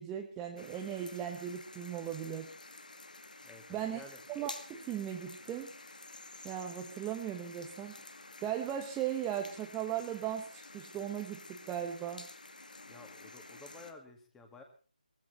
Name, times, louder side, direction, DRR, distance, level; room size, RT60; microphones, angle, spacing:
voice 1, 0.0-2.5 3.7-4.0 4.3-5.7 6.4-8.0 8.4-12.3, right 10 dB, 10° right, 2 dB, 1.1 m, -37 dB
sound 1, 0.6-13.9, left 2 dB, 70° left, 2.2 m, -51 dB
voice 2, 3.4-4.2 12.9-14.6, left 3 dB, 5° left, 4 dB, 2.1 m, -53 dB
20.0 x 15.0 x 4.3 m, 0.37 s
figure-of-eight pair, 155°, 5 cm